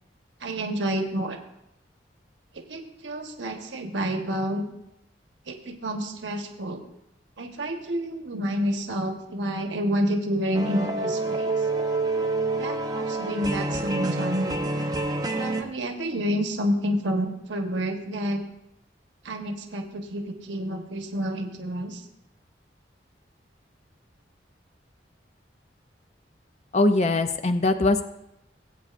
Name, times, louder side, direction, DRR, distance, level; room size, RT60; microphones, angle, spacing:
voice 1, 0.4-1.4 2.5-4.7 5.5-6.8 7.4-11.5 12.5-14.5 15.3-18.4 19.2-22.0, equal, 80° right, 4 dB, 1.2 m, -29 dB
sound 1, 10.5-15.6, right 2 dB, 20° right, 0.7 m, -27 dB
voice 2, 26.7-28.0, left 2 dB, 35° left, 8 dB, 0.4 m, -21 dB
19.5 x 8.5 x 2.5 m, 0.83 s
head